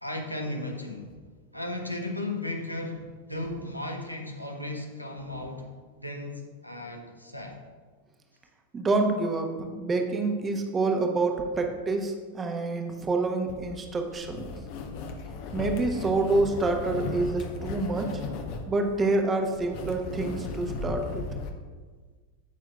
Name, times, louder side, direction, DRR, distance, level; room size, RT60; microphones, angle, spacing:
voice 1, 0.0-1.1 1.5-5.7 6.0-7.6, left 1 dB, 90° left, 2 dB, 1.1 m, -35 dB
voice 2, 8.7-14.5 15.5-18.2 18.7-21.3, right 3 dB, 20° right, 4 dB, 1.1 m, -27 dB
sound 1, 13.5-21.5, left 3 dB, 45° left, 0.9 m, -36 dB
16.0 x 6.0 x 2.4 m, 1.5 s
figure-of-eight pair, 90°, 0 cm